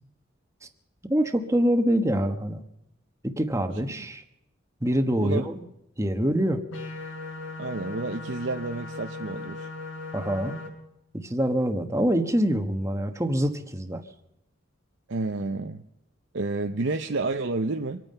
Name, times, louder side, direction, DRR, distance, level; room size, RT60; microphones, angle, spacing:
voice 1, 1.1-2.6 3.2-4.2 4.8-5.6 6.0-6.6 10.1-10.6 11.1-14.0, equal, 15° right, 7 dB, 1.2 m, -25 dB
sound 1, 6.7-10.7, left 3 dB, 85° left, 5.1 m, -38 dB
voice 2, 7.6-9.7 15.1-15.8 16.3-18.0, right 3 dB, 65° right, 5 dB, 0.7 m, -30 dB
25.5 x 9.2 x 5.5 m, 0.84 s
head